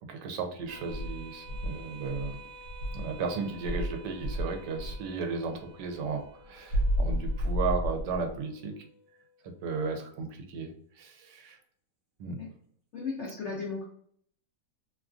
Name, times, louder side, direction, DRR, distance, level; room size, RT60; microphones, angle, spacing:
voice 1, 0.1-2.4 2.9-8.7 9.6-10.7 11.0-11.6 12.2-12.4, right 4 dB, 80° right, 5 dB, 1.2 m, -34 dB
sound 1, 0.7-9.6, right 2 dB, 40° right, 1.2 m, -52 dB
Insect, 0.9-3.2 3.6-5.1 6.7-8.4, equal, 90° left, 1.3 m, -31 dB
voice 2, 12.9-13.8, left 4 dB, 70° left, -4 dB, 0.6 m, -35 dB
3.1 x 2.4 x 2.3 m, 0.62 s
omnidirectional pair, 1.9 m